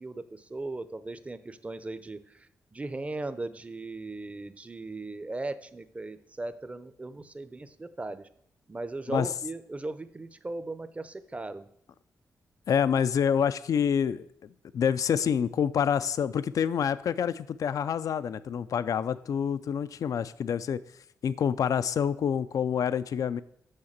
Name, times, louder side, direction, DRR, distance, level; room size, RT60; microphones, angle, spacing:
voice 1, 0.0-8.3 8.7-11.7, right 2 dB, 20° right, 13 dB, 0.6 m, -38 dB
voice 2, 12.7-14.3 14.7-20.8 21.2-23.4, left 8 dB, 65° left, 15 dB, 0.3 m, -27 dB
6.5 x 5.8 x 7.3 m, 0.70 s
cardioid pair, 105°, 6 cm